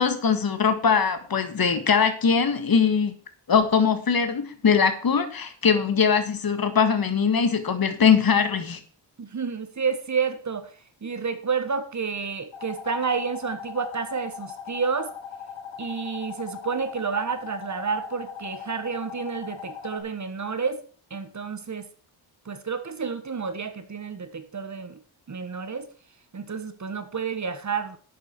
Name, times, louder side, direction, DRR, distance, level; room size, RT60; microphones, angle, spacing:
voice 1, 0.0-3.2 3.5-8.8, left 6 dB, 45° left, 9 dB, 1.7 m, -21 dB
voice 2, 9.2-10.7 11.0-15.1 15.8-20.8 21.1-21.9 22.4-25.0 25.3-25.9 26.3-28.0, right 5 dB, 35° right, 9 dB, 1.5 m, -30 dB
sound 1, 12.5-20.0, left 7 dB, 65° left, 2.5 m, -39 dB
11.5 x 8.6 x 4.5 m, 0.41 s
wide cardioid pair, 125°, 49 cm